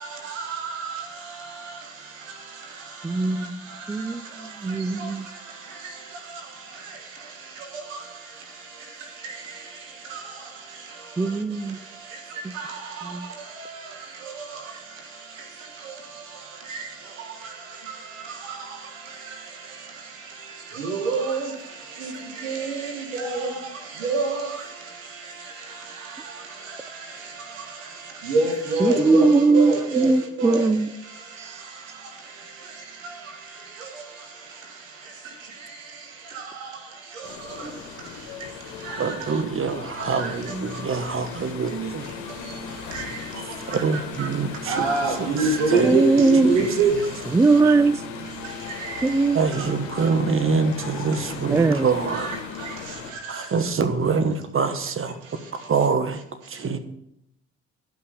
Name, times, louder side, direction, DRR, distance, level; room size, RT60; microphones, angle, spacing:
voice 1, 0.3-1.0 5.0-5.1 10.1-10.2 12.5-12.8 13.6-13.7 16.7-16.8 20.7-21.5 22.0-22.1 22.4-23.6 24.0-24.6 28.2-30.1 30.4-30.7 38.9-39.1 40.0-40.3 42.9-43.0 44.2-44.3 44.7-46.9 48.8-49.1 52.1-52.4 52.6-52.7, right 3 dB, 90° right, 1.6 m, -25 dB
voice 2, 3.0-3.5 3.9-4.2 4.6-5.3 11.2-11.8 13.1-13.3 28.8-30.9 31.4-31.5 37.6-37.7 45.8-46.6 47.3-48.0 49.0-49.4 51.5-51.9, right 3 dB, 10° right, 0.3 m, -20 dB
sound 1, 37.2-53.1, left 6 dB, 75° left, 1.4 m, -37 dB
voice 3, 39.0-42.1 43.6-44.9 45.3-45.4 45.7-46.0 46.4-46.7 49.3-52.3 53.3-55.2 55.5-56.2 56.5-56.8, right 5 dB, 35° right, 1.3 m, -25 dB
12.0 x 5.6 x 5.0 m
hypercardioid pair, 55°, 37 cm